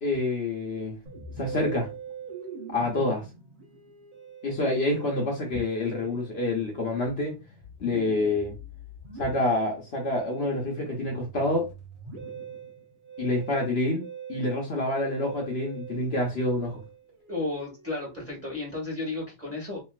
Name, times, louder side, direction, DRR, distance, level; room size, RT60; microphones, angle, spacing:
voice 1, 0.0-1.0 1.4-1.9 2.7-3.2 4.4-7.4 7.8-8.5 9.2-11.7 13.2-14.0 14.3-16.8, left 2 dB, 55° left, 1.0 m, -27 dB
Musical instrument, 1.1-18.7, right 5 dB, 45° right, 1.1 m, -43 dB
voice 2, 17.3-19.8, left 2 dB, 10° right, 1.4 m, -33 dB
3.1 x 2.5 x 2.3 m
omnidirectional pair, 1.3 m